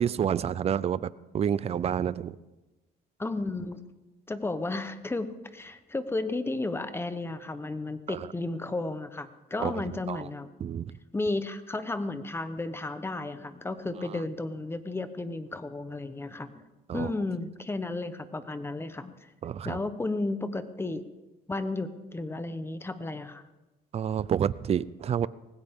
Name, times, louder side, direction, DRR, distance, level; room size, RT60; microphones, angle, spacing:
voice 1, 0.0-2.4 8.1-8.2 9.6-10.3 10.6-10.9 16.9-17.1 19.4-19.8 23.9-25.3, right 8 dB, 35° right, 18 dB, 0.5 m, -29 dB
voice 2, 3.2-3.8 4.3-10.5 11.1-16.6 16.9-19.1 19.6-21.0 21.5-23.4, left 2 dB, 15° left, 11 dB, 1.0 m, -33 dB
19.0 x 16.0 x 3.7 m, 1.1 s
cardioid pair, 110°, 17 cm